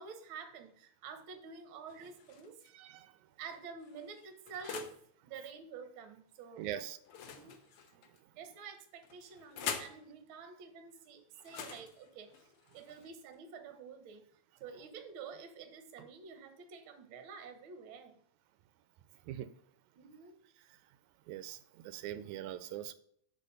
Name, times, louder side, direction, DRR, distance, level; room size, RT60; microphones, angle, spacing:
voice 1, 0.0-2.6 3.4-4.9 5.2-6.8 7.2-7.6 8.3-12.3 12.7-18.2 19.9-20.4, right 6 dB, 60° right, 7 dB, 1.6 m, -49 dB
sound 1, 1.9-2.7 3.4-5.1 7.0-8.2 9.0-10.0 11.4-13.3, left 7 dB, 65° left, 1.5 m, -45 dB
voice 2, 2.7-3.2 6.6-7.0 11.6-11.7 19.3-19.5 21.3-22.9, right 11 dB, 85° right, 12 dB, 2.0 m, -42 dB
7.5 x 4.2 x 5.2 m, 0.65 s
omnidirectional pair, 3.4 m